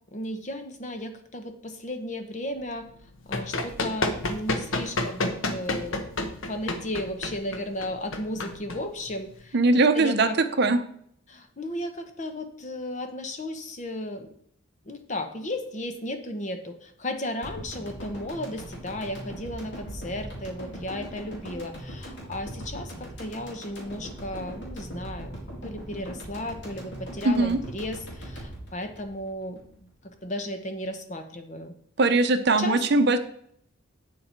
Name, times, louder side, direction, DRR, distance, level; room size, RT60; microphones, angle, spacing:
voice 1, 0.1-2.9 3.3-6.1 6.4-9.6 9.9-10.4 11.3-14.3 14.8-25.4 25.6-31.7 32.5-32.9, left 1 dB, 35° left, 7 dB, 1.0 m, -35 dB
Run, 2.9-9.4, left 2 dB, 75° left, 1.0 m, -30 dB
voice 2, 9.5-10.3 10.6-10.8 27.2-27.6 32.0-33.2, right 3 dB, 55° right, 9 dB, 0.7 m, -20 dB
sound 1, 17.4-29.8 30.0-30.1, equal, 60° left, 2.5 m, -40 dB
8.5 x 7.0 x 4.5 m, 0.66 s
head